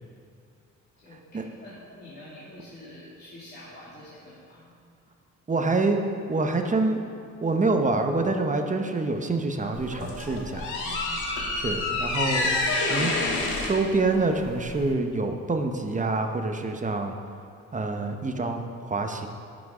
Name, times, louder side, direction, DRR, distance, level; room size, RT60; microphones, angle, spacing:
voice 1, 1.0-4.7 10.8-11.3, left 1 dB, 30° left, -10 dB, 2.5 m, -46 dB
voice 2, 5.5-6.0 6.3-7.0 7.4-10.7 11.5-13.1 13.6-17.2 17.7-19.3, right 3 dB, 25° right, 5 dB, 0.9 m, -26 dB
sound 1, 9.7-14.9, left 2 dB, 85° left, 1.6 m, -28 dB
11.0 x 6.1 x 4.9 m, 2.3 s
cardioid pair, 90°, 30 cm